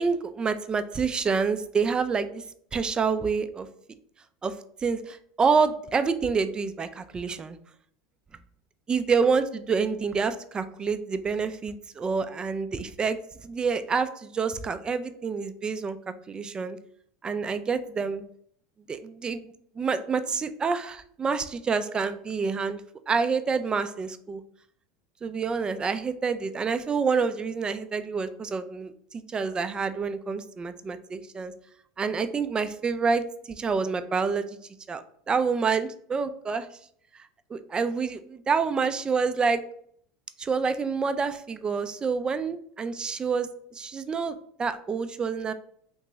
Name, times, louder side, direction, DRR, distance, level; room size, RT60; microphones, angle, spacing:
voice 1, 0.0-2.4 2.7-3.7 4.4-4.5 4.8-7.6 8.9-16.0 16.3-16.8 17.2-18.2 18.9-22.8 23.1-24.4 25.2-31.5 32.0-34.6 34.9-36.7 37.5-39.6 40.4-45.5, right 5 dB, 20° right, 11 dB, 0.3 m, -28 dB
3.0 x 2.8 x 3.5 m, 0.63 s
supercardioid pair, 105°, 4 cm